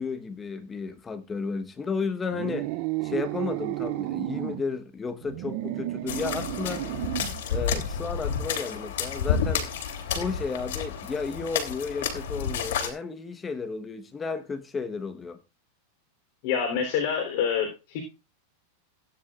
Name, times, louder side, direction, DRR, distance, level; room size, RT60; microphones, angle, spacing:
voice 1, 0.0-2.7 3.0-6.9 7.5-9.7 10.1-15.4, left 5 dB, 15° left, 1.2 m, -33 dB
sound 1, 2.3-4.6 5.2-7.4, right 17 dB, 55° right, 0.5 m, -32 dB
sound 2, 6.1-12.9, left 7 dB, 75° left, 3.0 m, -30 dB
voice 2, 16.4-18.0, left 7 dB, 55° left, 3.6 m, -27 dB
17.0 x 9.9 x 2.5 m
supercardioid pair, 140°, 0 cm